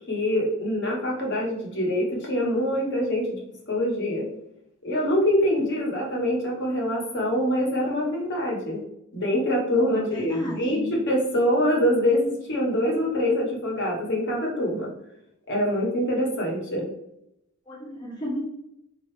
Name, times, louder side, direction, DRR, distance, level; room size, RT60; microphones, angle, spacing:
voice 1, 0.1-3.4 3.7-4.3 4.8-8.8 9.1-14.9 15.5-16.9, left 1 dB, 55° left, -2 dB, 1.3 m, -24 dB
voice 2, 9.8-10.9 17.7-18.4, left 1 dB, 20° left, -4 dB, 0.6 m, -34 dB
4.4 x 2.8 x 3.2 m, 0.83 s
head